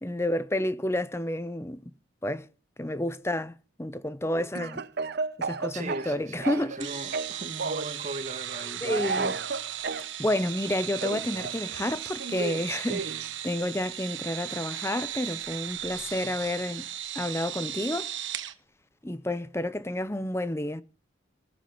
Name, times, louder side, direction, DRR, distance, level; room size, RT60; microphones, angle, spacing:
voice 1, 0.0-1.9 2.2-2.5 2.8-4.8 5.4-7.0 8.8-9.3 10.2-16.8 17.1-18.1 19.0-20.8, left 1 dB, 15° left, 0.7 m, -30 dB
Speech / Cough, 4.5-6.8 7.1-7.9 8.8-10.1 11.0-13.3, right 4 dB, 55° right, 0.8 m, -33 dB
voice 2, 5.7-9.3, right 2 dB, 35° right, 1.8 m, -38 dB
sound 1, 6.8-18.5, right 11 dB, 70° right, 1.3 m, -37 dB
20.0 x 8.6 x 5.9 m
head